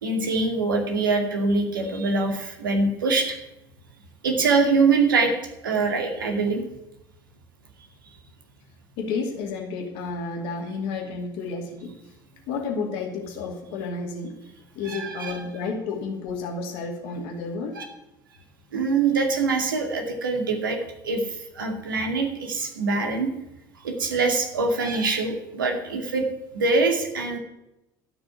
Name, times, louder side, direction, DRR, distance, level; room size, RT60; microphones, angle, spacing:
voice 1, 0.0-3.4 4.2-5.3 5.6-6.6 14.9-15.3 17.8-17.9 18.7-20.8 21.0-23.3 23.8-26.3 26.5-27.4, right 3 dB, 80° right, 3 dB, 2.2 m, -24 dB
voice 2, 9.0-12.0 12.5-14.4 14.7-17.8, left 4 dB, 60° left, 1 dB, 2.7 m, -31 dB
12.5 x 6.2 x 9.5 m, 0.88 s
figure-of-eight pair, 65°, 11 cm